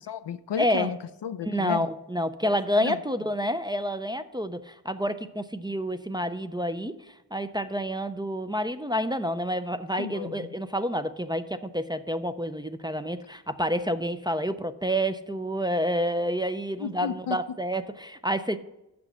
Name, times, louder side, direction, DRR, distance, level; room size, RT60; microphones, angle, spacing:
voice 1, 0.0-1.9 2.4-3.0 10.0-10.5 16.8-17.6, left 8 dB, 85° left, 12 dB, 0.6 m, -33 dB
voice 2, 0.6-0.9 1.5-18.6, equal, 10° right, 10 dB, 0.4 m, -29 dB
7.2 x 6.1 x 7.8 m, 0.90 s
wide cardioid pair, 75°, 41 cm